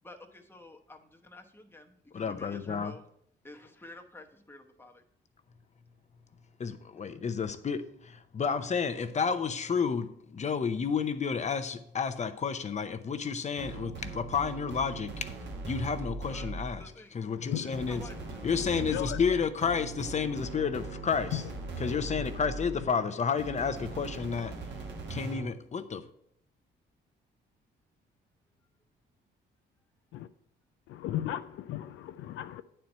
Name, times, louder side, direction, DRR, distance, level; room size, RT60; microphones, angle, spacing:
voice 1, 0.0-3.0 3.4-5.0 6.9-7.0 16.3-17.2 17.6-18.2, left 2 dB, 10° left, 1.0 m, -50 dB
voice 2, 2.1-3.0 6.6-15.4 15.6-16.8 17.1-18.0 18.4-21.4 21.8-24.6 25.1-26.1, left 6 dB, 35° left, 0.7 m, -31 dB
sound 1, 13.6-16.8 17.7-22.9 23.4-25.6, right 3 dB, 65° right, 1.3 m, -40 dB
voice 3, 17.2-19.2 20.2-20.6 20.9-21.0 21.3-21.4 21.7-22.3 30.1-30.3 30.9-32.6, left 12 dB, 80° left, 0.4 m, -38 dB
9.2 x 4.4 x 5.4 m
cardioid pair, 90°, 20 cm